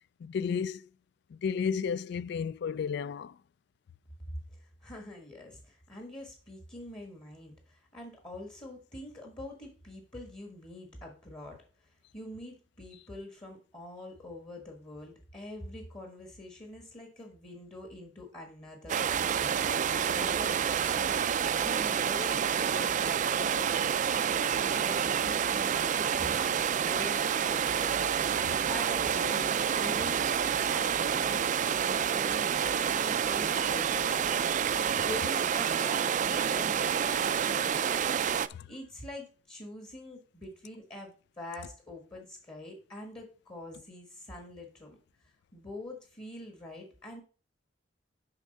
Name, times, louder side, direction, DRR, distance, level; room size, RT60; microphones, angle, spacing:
voice 1, 0.2-0.9 1.3-3.4 38.5-38.6, left 6 dB, 65° left, 0.3 m, -32 dB
voice 2, 4.6-28.0 28.3-38.1 38.7-45.0 45.5-47.2, left 1 dB, 30° left, 1.5 m, -45 dB
sound 1, 18.9-38.5, right 8 dB, 45° right, 0.4 m, -28 dB
9.6 x 3.7 x 5.3 m
head